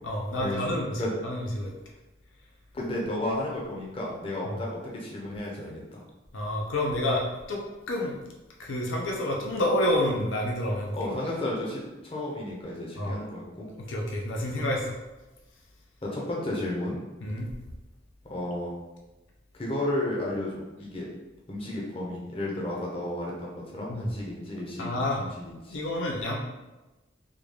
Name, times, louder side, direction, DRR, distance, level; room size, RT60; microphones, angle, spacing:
voice 1, 0.0-1.7 4.4-4.6 6.3-7.6 7.9-8.2 8.6-10.9 13.0-13.2 13.8-14.9 17.2-17.5 23.9-24.0 24.8-25.3 25.7-26.4, left 1 dB, 80° left, -1 dB, 0.6 m, -29 dB
voice 2, 2.7-6.0 10.9-13.7 16.0-17.0 18.3-18.7 19.6-21.1 21.5-25.8, left 1 dB, 30° left, -4 dB, 0.7 m, -33 dB
3.6 x 2.3 x 3.3 m, 1.1 s
head